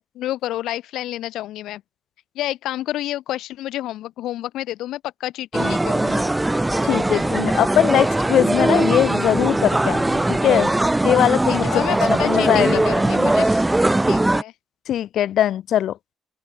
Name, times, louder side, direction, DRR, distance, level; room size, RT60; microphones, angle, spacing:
voice 1, 0.0-1.8 2.3-6.3 11.5-13.7 14.1-14.5, left 14 dB, 85° left, 1.7 m, -29 dB
sound 1, 5.5-14.4, right 1 dB, 10° right, 1.0 m, -20 dB
voice 2, 6.8-10.7 11.0-11.8 12.1-12.8 14.9-16.0, left 11 dB, 70° left, 0.5 m, -20 dB
open air
cardioid pair, 110°, 0 cm